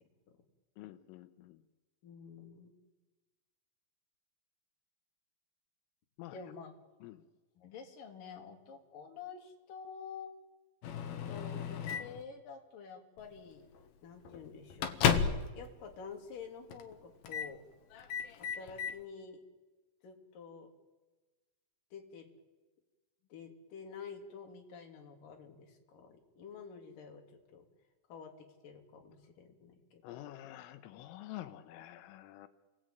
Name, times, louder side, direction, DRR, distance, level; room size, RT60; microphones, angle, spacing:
voice 1, 0.8-1.6 6.2-6.4 7.0-7.3 30.0-32.5, left 14 dB, 85° left, 10 dB, 3.6 m, -48 dB
voice 2, 2.0-2.7 6.3-6.7 7.6-10.3 11.3-13.7 14.0-15.0 15.6-17.6 18.4-19.4 20.0-20.7 21.9-22.3 23.3-27.6 28.1-28.3 28.6-30.0, left 6 dB, 50° left, 3 dB, 3.8 m, -49 dB
Microwave oven, 10.8-12.2 13.2-13.4 13.7-13.9 14.2-15.6 15.9-16.0 16.7-16.9 17.2-17.5 17.9-19.0, left 7 dB, 65° left, 2.6 m, -34 dB
29.5 x 20.5 x 9.1 m, 1.2 s
omnidirectional pair, 5.8 m